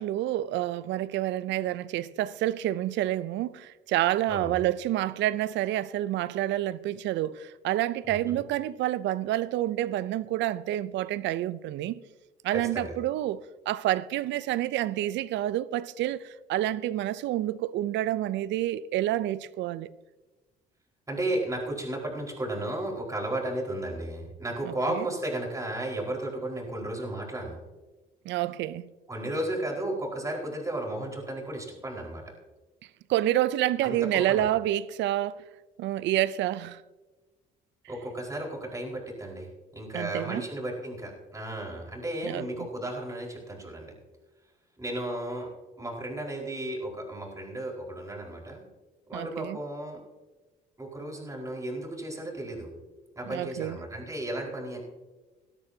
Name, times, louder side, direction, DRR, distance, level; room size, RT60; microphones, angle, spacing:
voice 1, 0.0-12.0 12.4-13.4 13.7-19.9 24.7-25.1 28.3-28.8 33.1-35.4 35.8-36.8 39.9-40.5 42.2-42.7 49.1-49.6 53.3-53.8, right 14 dB, 75° right, 0.5 m, -28 dB
voice 2, 4.3-4.6 8.1-8.4 12.5-13.0 21.1-27.6 29.1-32.2 33.8-34.5 37.9-43.9 44.8-45.5 45.8-48.6 49.1-50.0 50.8-52.7 53.2-54.8, right 1 dB, 15° right, 4.6 m, -34 dB
18.0 x 12.5 x 2.8 m
supercardioid pair, 80°, 19 cm